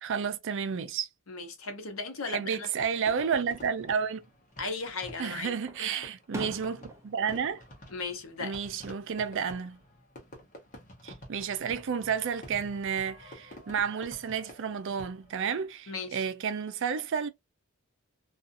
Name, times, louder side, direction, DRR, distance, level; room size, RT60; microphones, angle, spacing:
voice 1, 0.0-1.1 2.3-4.2 5.2-7.6 8.4-9.8 11.0-17.3, right 6 dB, 60° right, 0.5 m, -31 dB
voice 2, 1.3-2.7 4.6-5.5 5.8-5.9 7.9-8.6 15.9-16.2, left 4 dB, 80° left, 0.8 m, -36 dB
Fireworks, 2.8-15.5, equal, 40° left, 0.9 m, -49 dB
Fireworks 2, 4.5-5.2 5.7-8.8 9.1-9.7 11.2-12.0, right 1 dB, 15° right, 0.5 m, -46 dB
2.5 x 2.4 x 2.5 m
head